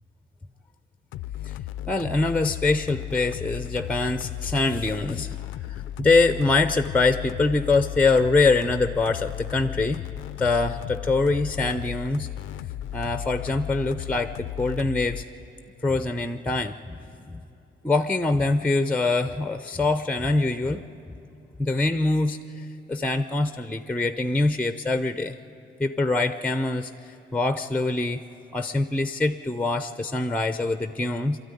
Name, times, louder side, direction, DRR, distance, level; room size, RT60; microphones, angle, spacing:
sound 1, 1.1-15.2, left 13 dB, 85° left, 0.4 m, -35 dB
voice 1, 1.9-5.3 5.7-10.0 10.4-12.3 12.9-15.3 15.8-17.0 17.3-17.4 17.8-20.8 21.6-25.4 25.8-28.2 28.5-31.4, left 3 dB, 5° left, 10 dB, 0.6 m, -24 dB
24.5 x 13.0 x 9.9 m, 2.9 s
cardioid pair, 90°, 20 cm